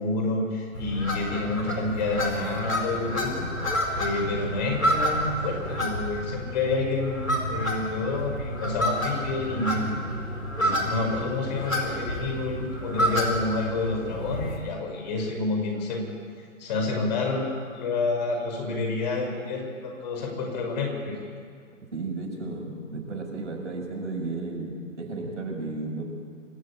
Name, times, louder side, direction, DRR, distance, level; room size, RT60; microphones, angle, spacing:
voice 1, 0.0-3.5 4.0-9.9 10.6-16.1 16.6-21.2, left 3 dB, 35° left, 1 dB, 5.6 m, -29 dB
sound 1, 0.7-14.6, equal, 85° left, 4.7 m, -29 dB
voice 2, 21.9-26.0, right 3 dB, 65° right, 0 dB, 6.7 m, -33 dB
26.0 x 13.5 x 8.8 m, 2.1 s
figure-of-eight pair, 130°, 39 cm